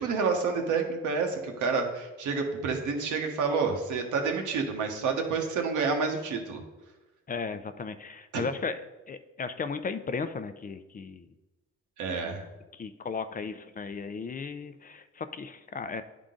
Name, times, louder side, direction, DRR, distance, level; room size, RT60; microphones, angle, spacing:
voice 1, 0.0-6.6 8.3-8.4 12.0-12.4, right 5 dB, 80° right, 3 dB, 1.2 m, -29 dB
voice 2, 7.3-8.8 9.1-11.3 12.2-12.4 12.7-16.0, left 5 dB, 30° left, 10 dB, 0.4 m, -35 dB
10.0 x 3.7 x 3.8 m, 1.1 s
cardioid pair, 90°, 30 cm